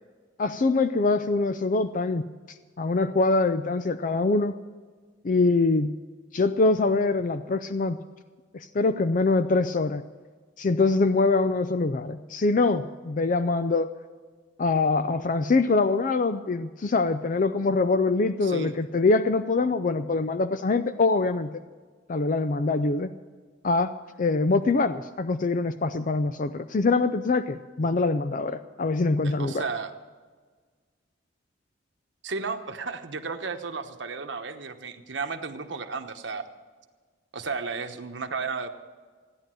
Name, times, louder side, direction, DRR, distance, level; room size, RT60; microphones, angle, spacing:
voice 1, 0.4-4.6 5.2-6.0 6.3-8.0 8.5-10.0 10.6-13.9 14.6-21.5 22.1-23.1 23.6-29.6, left 3 dB, 45° left, 11 dB, 0.4 m, -24 dB
voice 2, 18.4-18.7 29.2-29.9 32.2-36.4 37.3-38.7, right 4 dB, 75° right, 6 dB, 1.1 m, -33 dB
16.0 x 10.5 x 7.6 m, 1.5 s
head